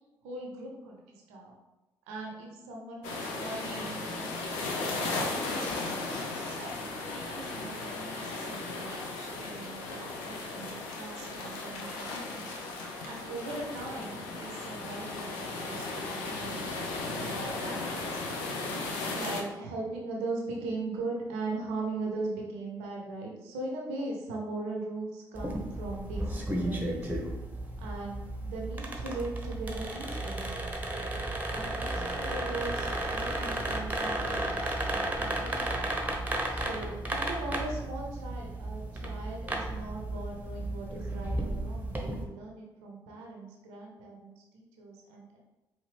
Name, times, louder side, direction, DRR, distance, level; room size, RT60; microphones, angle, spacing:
voice 1, 0.2-1.0 1.3-1.5 2.1-5.9 6.3-18.2 19.1-27.1 27.8-30.5 31.5-35.8 36.5-45.4, right 2 dB, 75° right, -1 dB, 0.7 m, -40 dB
sound 1, 3.0-19.4, left 3 dB, 75° left, 0.5 m, -36 dB
sound 2, 25.3-42.2, right 1 dB, 15° right, 0.9 m, -34 dB
4.9 x 2.6 x 3.2 m, 1.1 s
figure-of-eight pair, 40°, 11 cm